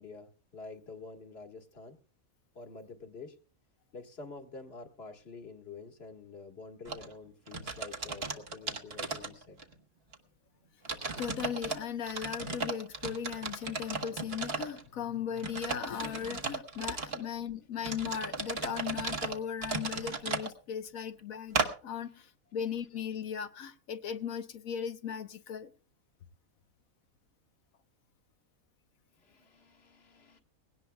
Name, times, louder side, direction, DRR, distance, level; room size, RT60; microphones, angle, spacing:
voice 1, 0.0-2.0 2.6-3.4 3.9-9.6 22.0-22.3 29.2-30.4, left 4 dB, 45° left, 1.7 m, -48 dB
sound 1, 6.9-7.1 7.5-9.7 10.1-10.2 10.8-11.8 12.1-14.8 15.4-17.2 17.8-20.5 21.5-21.7, right 4 dB, 45° right, 1.5 m, -35 dB
voice 2, 11.2-22.3 22.5-25.7, left 8 dB, 75° left, 1.3 m, -37 dB
20.5 x 17.5 x 2.2 m
omnidirectional pair, 1.5 m